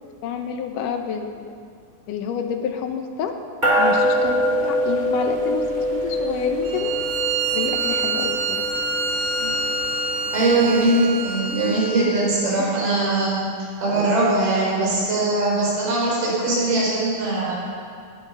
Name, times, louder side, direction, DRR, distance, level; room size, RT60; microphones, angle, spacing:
voice 1, 0.2-1.5 2.1-3.4 3.8-6.9 7.5-8.7 10.4-10.5 12.6-12.7, left 7 dB, 75° left, 5 dB, 2.2 m, -28 dB
sound 1, 3.6-11.3, equal, 15° right, 1.8 m, -25 dB
Bowed string instrument, 6.6-12.0, right 4 dB, 65° right, 2.9 m, -26 dB
voice 2, 10.3-13.5 13.8-17.5, right 2 dB, 85° right, -6 dB, 6.2 m, -21 dB
18.5 x 9.7 x 5.4 m, 2.2 s
omnidirectional pair, 4.3 m